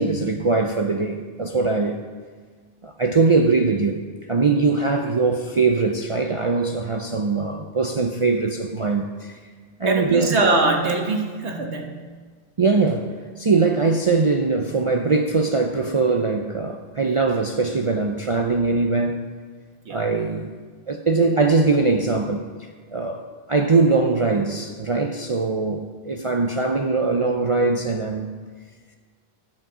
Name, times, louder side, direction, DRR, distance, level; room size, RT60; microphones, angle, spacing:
voice 1, 0.0-2.0 2.8-4.0 4.3-9.4 9.8-10.4 12.6-19.2 19.9-20.5 20.9-22.5 22.9-23.2 23.5-28.3, right 3 dB, 40° right, 3 dB, 0.5 m, -21 dB
voice 2, 9.8-12.0 19.9-20.1, right 2 dB, 85° right, 2 dB, 1.6 m, -22 dB
10.5 x 7.5 x 6.1 m, 1.5 s
omnidirectional pair, 1.1 m